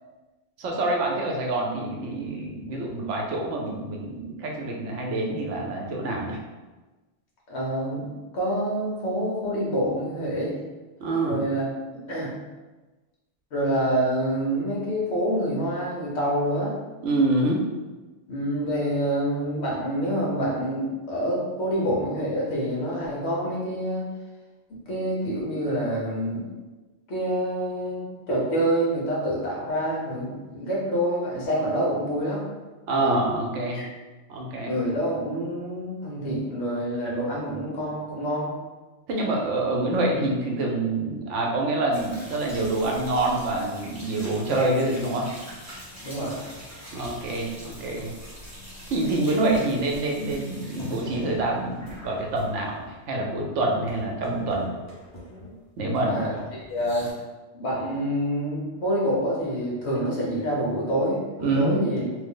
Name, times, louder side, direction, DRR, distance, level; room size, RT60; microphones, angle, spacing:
voice 1, 0.6-6.4 11.0-11.4 17.0-17.6 32.9-33.8 34.3-34.7 39.1-45.3 46.9-48.1 48.9-54.7 55.8-56.2 61.4-61.8, right 2 dB, 85° right, 0 dB, 1.0 m, -26 dB
voice 2, 7.5-10.6 11.2-11.7 12.1-12.3 13.5-16.7 18.3-24.1 24.9-26.5 27.1-32.4 33.0-33.2 33.7-33.8 34.5-38.5 46.0-46.4 56.0-57.1 57.5-62.0, equal, 65° left, -5 dB, 1.2 m, -27 dB
sound 1, 41.9-53.2 53.5-55.6 55.9-57.1, left 1 dB, 15° left, 0.7 m, -43 dB
3.0 x 2.0 x 3.7 m, 1.2 s
omnidirectional pair, 1.2 m